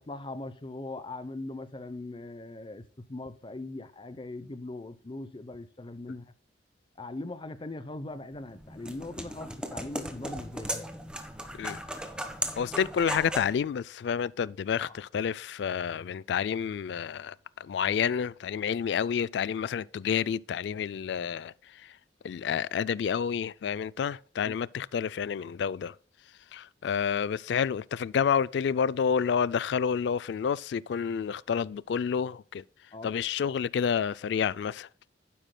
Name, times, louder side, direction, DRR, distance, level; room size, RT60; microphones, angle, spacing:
voice 1, 0.0-6.3 7.0-10.9 14.8-15.0 24.4-24.5 32.9-33.1, left 2 dB, 30° left, 0.7 m, -40 dB
sound 1, 8.3-13.6, right 1 dB, 5° right, 1.1 m, -37 dB
voice 2, 12.6-21.5 21.8-21.9 22.2-25.9 26.5-32.6 33.0-34.9, left 7 dB, 65° left, 0.3 m, -29 dB
11.5 x 10.0 x 2.2 m
head